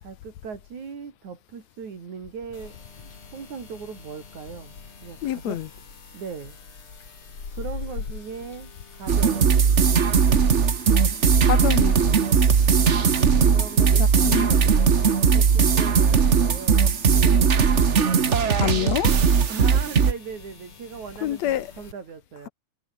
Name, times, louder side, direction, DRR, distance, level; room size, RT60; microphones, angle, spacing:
voice 1, 0.0-4.7 5.0-5.6 6.1-6.6 7.5-9.8 13.4-14.6 15.3-17.5 18.4-19.0 19.5-22.5, right 6 dB, 75° right, 5.1 m, -39 dB
sound 1, 2.5-21.9, left 5 dB, 45° left, 4.4 m, -43 dB
voice 2, 5.2-5.7 11.4-12.2 14.0-14.7 18.5-19.1 21.2-21.7, left 12 dB, 70° left, 2.2 m, -27 dB
sound 2, 9.1-20.1, right 6 dB, 50° right, 0.8 m, -19 dB
omnidirectional pair, 3.3 m